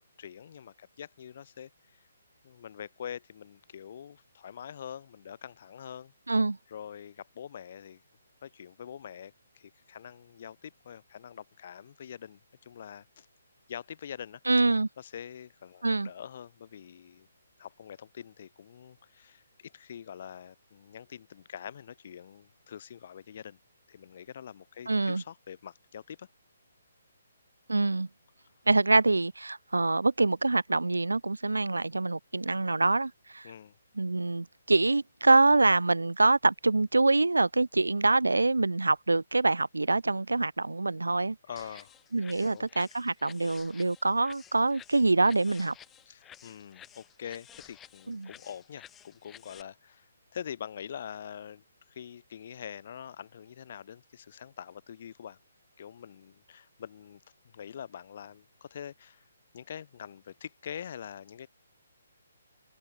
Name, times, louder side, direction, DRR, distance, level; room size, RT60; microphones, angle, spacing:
voice 1, 0.2-2.0 2.4-6.1 6.7-8.0 8.4-13.3 13.7-14.4 15.0-17.3 17.6-23.6 23.9-26.3 33.4-33.8 41.4-42.0 42.3-42.7 46.1-55.4 55.8-57.2 57.5-59.2 59.5-61.5, left 8 dB, 45° left, 2.1 m, -44 dB
voice 2, 14.5-14.9 15.8-16.1 24.9-25.2 27.7-28.1 28.7-33.5 34.0-41.4 42.1-45.7 48.1-48.3, right 3 dB, 80° right, 0.4 m, -25 dB
sound 1, 41.6-49.6, left 10 dB, 15° left, 2.6 m, -53 dB
figure-of-eight pair, 135°, 0 cm